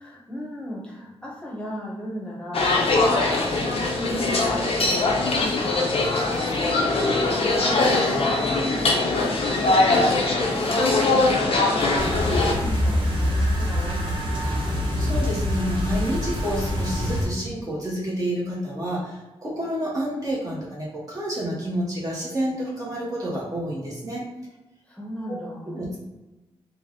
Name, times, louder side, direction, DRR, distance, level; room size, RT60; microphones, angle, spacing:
voice 1, 0.0-6.0 6.6-7.3 7.6-14.7 24.9-25.8, equal, 10° left, -3 dB, 0.9 m, -37 dB
sound 1, 2.5-12.5, left 2 dB, 65° left, 0.6 m, -21 dB
sound 2, 12.0-17.2, left 1 dB, 50° right, 1.1 m, -25 dB
voice 2, 15.0-24.3 25.3-25.4 25.7-26.0, equal, 35° right, -5 dB, 0.9 m, -29 dB
3.4 x 2.0 x 3.7 m, 1.1 s
wide cardioid pair, 125°, 11 cm